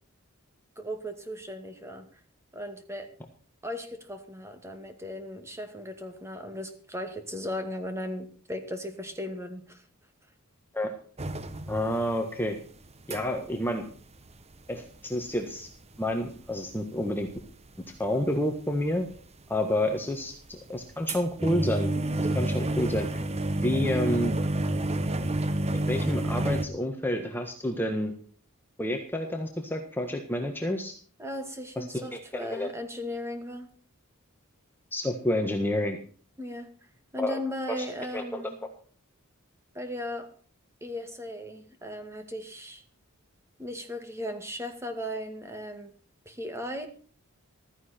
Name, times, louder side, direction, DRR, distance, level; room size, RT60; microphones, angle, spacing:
voice 1, 0.8-2.1 2.5-3.1 3.6-9.8 23.8-24.2 31.2-33.7 36.4-36.7 37.1-38.6 39.7-40.3 40.8-42.8 43.6-46.0 46.3-46.9, left 1 dB, 15° right, 6 dB, 2.2 m, -37 dB
sound 1, 11.2-12.1 12.4-13.5 13.8-13.9 14.2-14.7 15.2-16.8 17.1-18.0 18.5-19.2 19.6-26.7, right 1 dB, 30° right, 1.1 m, -29 dB
voice 2, 11.7-12.6 13.1-13.8 14.7-15.7 16.0-17.3 18.0-19.1 19.5-21.9 22.3-23.2 23.6-24.3 25.7-28.1 28.8-30.9 31.8-32.7 34.9-36.0 37.2-37.4 37.7-37.8 38.1-38.4, left 1 dB, 10° left, 3 dB, 1.5 m, -29 dB
15.5 x 14.0 x 4.5 m, 0.42 s
head